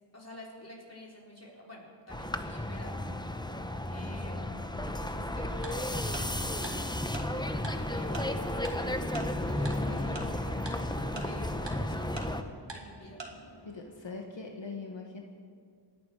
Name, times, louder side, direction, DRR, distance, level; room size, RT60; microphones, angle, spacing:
voice 1, 0.1-3.1 3.9-7.4 7.7-10.7 11.2-13.2, left 1 dB, 35° left, -3 dB, 4.4 m, -50 dB
sound 1, 2.1-12.4, left 1 dB, 10° left, 0.9 m, -33 dB
sound 2, 5.4-14.0, left 1 dB, 65° left, 2.3 m, -54 dB
Tick-tock, 5.6-5.7 6.1-6.2 6.6-6.7 7.1-7.2 7.6-7.7 8.1-8.2 8.6-8.7 9.1-9.2 9.6-9.7 10.1-10.2 10.7-10.8 11.2-11.3 11.7-11.8 12.2-12.3 12.7-12.8 13.2-13.3, right 3 dB, 80° right, 2.0 m, -40 dB
voice 2, 13.6-15.2, left 4 dB, 85° left, 1 dB, 1.4 m, -42 dB
27.0 x 10.0 x 4.8 m, 2.2 s
wide cardioid pair, 55°, 43 cm